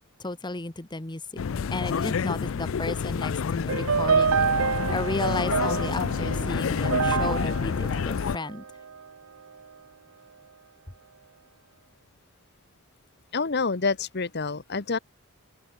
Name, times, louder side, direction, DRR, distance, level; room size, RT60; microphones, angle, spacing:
voice 1, 0.2-1.2 1.7-8.6, left 2 dB, 20° left, 1.2 m, -33 dB
sound 1, 1.4-8.4, left 6 dB, 70° left, 0.4 m, -28 dB
sound 2, 3.7-9.0, right 6 dB, 85° right, 0.7 m, -27 dB
voice 2, 13.3-15.0, left 4 dB, 50° left, 1.1 m, -27 dB
open air
head